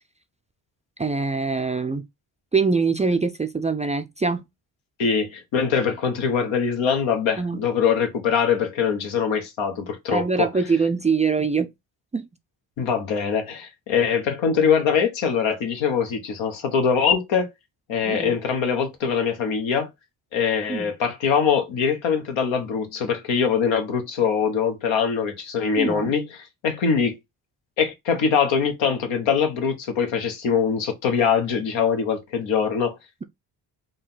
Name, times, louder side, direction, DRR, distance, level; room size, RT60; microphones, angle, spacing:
voice 1, 1.0-2.0 2.5-4.5 7.4-7.6 10.1-11.7 12.1-12.3 18.0-18.4 20.7-20.9 25.8-26.1, right 4 dB, 15° right, 0.4 m, -23 dB
voice 2, 5.0-10.5 12.8-17.5 17.9-19.9 20.3-26.2 26.6-27.2 27.8-32.9, left 6 dB, 80° left, 1.1 m, -23 dB
3.9 x 2.3 x 3.9 m
supercardioid pair, 65°, 45 cm